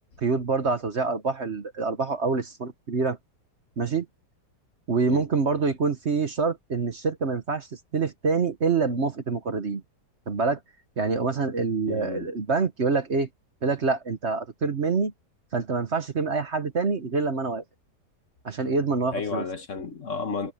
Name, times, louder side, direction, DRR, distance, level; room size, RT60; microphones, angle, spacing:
voice 1, 0.2-3.2 3.8-4.1 4.9-7.7 7.9-9.8 10.3-10.6 11.0-13.3 13.6-15.1 15.5-17.6 18.4-19.4, right 4 dB, 45° right, 1.3 m, -26 dB
voice 2, 11.9-12.3 19.1-20.5, left 5 dB, 50° left, 1.5 m, -32 dB
omnidirectional pair, 1.8 m